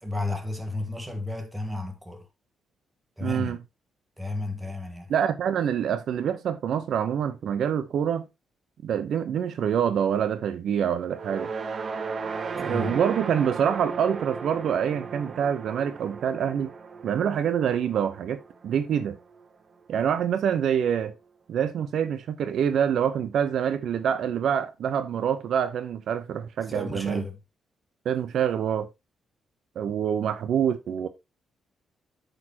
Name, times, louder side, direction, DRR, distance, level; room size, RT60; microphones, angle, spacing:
voice 1, 0.0-2.3 3.2-3.6 4.2-5.1 12.6-13.0 26.7-27.4, left 2 dB, 10° right, 1.7 m, -33 dB
voice 2, 3.2-3.6 5.1-8.3 8.8-11.5 12.6-16.7 17.0-19.2 19.9-21.1 21.5-27.2 28.0-28.9 29.8-31.1, right 8 dB, 70° right, 0.8 m, -26 dB
sound 1, 11.1-19.4, right 5 dB, 40° right, 0.9 m, -35 dB
8.8 x 6.6 x 2.9 m
cardioid pair, 125°, 0 cm